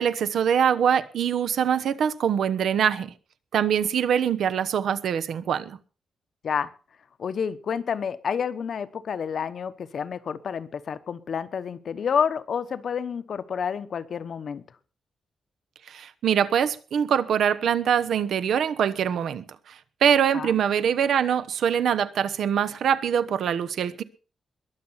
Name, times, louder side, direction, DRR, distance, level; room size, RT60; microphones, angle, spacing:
voice 1, 0.0-3.1 3.5-5.8 15.9-19.4 20.0-24.0, right 8 dB, 75° right, 1.0 m, -23 dB
voice 2, 7.2-14.6 20.3-20.6, left 7 dB, 50° left, 0.9 m, -29 dB
21.5 x 7.4 x 5.7 m
wide cardioid pair, 180°, 0 cm